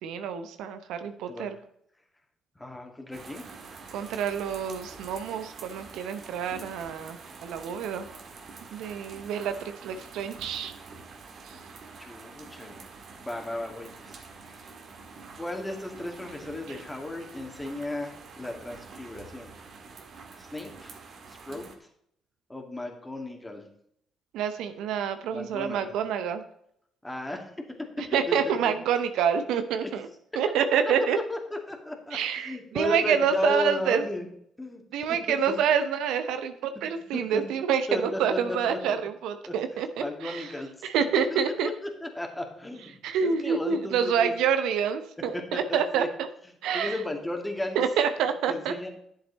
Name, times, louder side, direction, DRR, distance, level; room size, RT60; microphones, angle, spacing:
voice 1, 0.0-1.6 3.9-8.1 8.7-10.7 11.5-11.6 24.3-26.4 28.1-30.1 30.4-31.2 32.1-34.0 34.9-40.5 40.8-41.7 43.0-46.3 46.6-46.9 47.7-48.7, right 7 dB, 70° right, 9 dB, 0.7 m, -27 dB
voice 2, 2.6-3.4 9.5-9.6 12.0-12.9 13.2-14.7 15.4-19.5 20.4-20.9 21.3-21.9 22.5-23.6 25.3-25.9 27.0-27.5 28.3-28.7 29.8-29.9 31.3-34.3 34.6-34.8 35.1-35.2 37.1-37.4 37.9-39.0 39.4-39.5 40.0-40.9 41.3-44.4 45.3-46.1 46.7-47.8 48.5-48.9, left 1 dB, 15° left, 2 dB, 2.3 m, -35 dB
sound 1, 3.1-21.8, right 4 dB, 55° right, 1.6 m, -46 dB
10.5 x 7.7 x 4.2 m, 0.70 s
hypercardioid pair, 50°, 0 cm